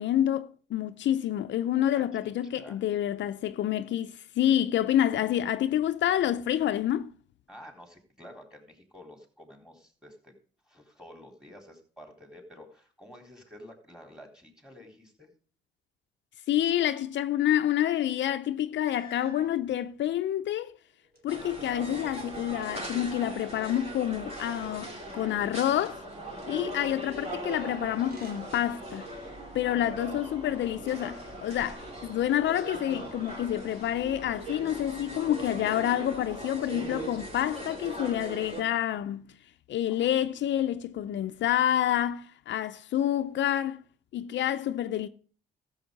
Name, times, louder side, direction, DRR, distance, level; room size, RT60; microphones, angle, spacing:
voice 1, 0.0-7.1 16.5-20.8 21.2-26.0 26.5-29.1 29.5-39.3 39.7-43.8 44.1-45.1, left 11 dB, 65° left, 0.6 m, -28 dB
voice 2, 1.7-2.8 7.5-10.4 10.6-15.3 30.1-31.0 39.9-40.1, equal, 5° right, 3.9 m, -50 dB
sound 1, 18.8-19.6 20.4-21.6 21.8-23.4 27.9-28.7 29.2-30.2 31.0-31.8 32.4-33.2, right 1 dB, 50° right, 3.0 m, -53 dB
sound 2, 21.3-38.6, right 1 dB, 30° right, 3.5 m, -40 dB
13.5 x 7.4 x 5.2 m
cardioid pair, 90°, 20 cm